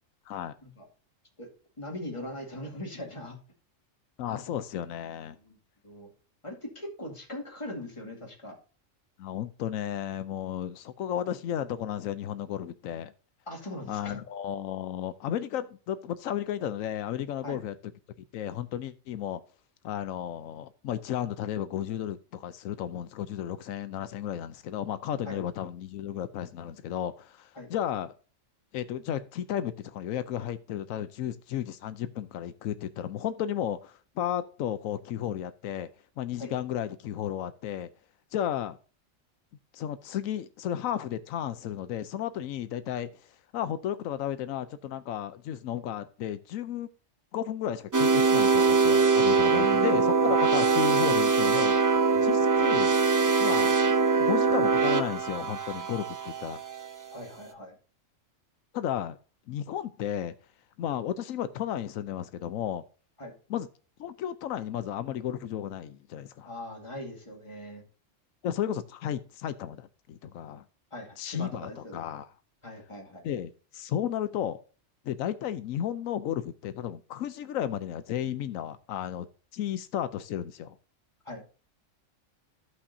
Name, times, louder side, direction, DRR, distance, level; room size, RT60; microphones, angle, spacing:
voice 1, 0.3-0.6 4.2-5.4 9.2-13.1 13.9-17.7 18.3-19.4 19.8-28.1 28.7-35.9 36.2-37.9 38.3-38.8 39.7-46.9 47.3-51.7 52.1-52.9 53.4-53.8 54.2-56.6 58.7-59.2 59.5-60.3 60.8-62.8 63.5-63.7 64.0-66.5 68.4-70.6 71.2-72.3 73.2-74.6 75.0-79.3 79.5-80.8, left 10 dB, 90° left, 1.0 m, -33 dB
voice 2, 1.8-3.4 4.2-4.4 5.4-5.6 5.8-6.1 6.4-8.5 13.5-14.2 17.4-17.6 25.3-25.4 27.6-27.7 36.4-36.5 49.5-50.4 57.1-57.8 63.2-63.3 66.4-67.8 70.9-72.0 72.6-73.3 81.2-81.4, left 1 dB, 25° left, 2.3 m, -40 dB
sound 1, 47.9-56.9, right 4 dB, 25° right, 0.4 m, -23 dB
15.0 x 5.7 x 2.7 m
omnidirectional pair, 1.3 m